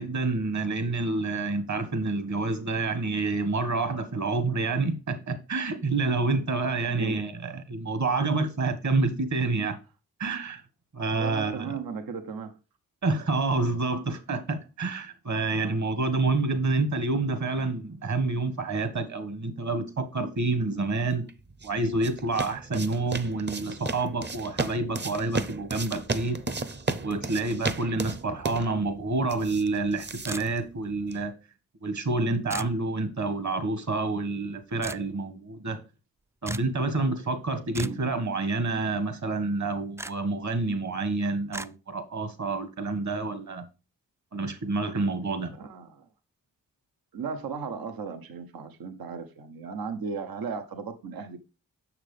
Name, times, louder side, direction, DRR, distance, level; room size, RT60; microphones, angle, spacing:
voice 1, 0.0-9.8 10.2-10.6 10.9-11.8 13.0-21.3 21.6-26.4 27.0-31.3 31.8-35.8 36.4-43.6 44.3-45.5, right 3 dB, 50° right, 1.6 m, -28 dB
voice 2, 11.2-12.6 15.5-15.8 37.7-38.0 45.5-46.1 47.1-51.4, right 5 dB, 75° right, 0.9 m, -36 dB
sound 1, 21.3-31.3, right 3 dB, 30° right, 0.8 m, -35 dB
sound 2, 30.3-30.8 32.5-32.8 34.8-35.1 36.5-36.7 37.7-38.1 40.0-40.1 41.5-41.7, right 2 dB, 10° right, 0.3 m, -36 dB
6.6 x 5.9 x 3.3 m
cardioid pair, 45°, 36 cm